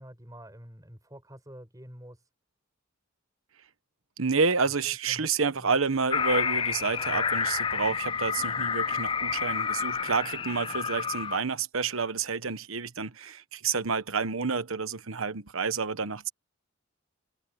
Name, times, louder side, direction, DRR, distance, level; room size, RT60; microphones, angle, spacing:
voice 1, 0.0-2.3 4.6-5.7 7.1-7.3, equal, 15° right, 6.0 m, -48 dB
voice 2, 4.2-16.3, right 5 dB, 80° right, 1.2 m, -29 dB
sound 1, 6.1-11.4, left 6 dB, 25° left, 0.4 m, -29 dB
head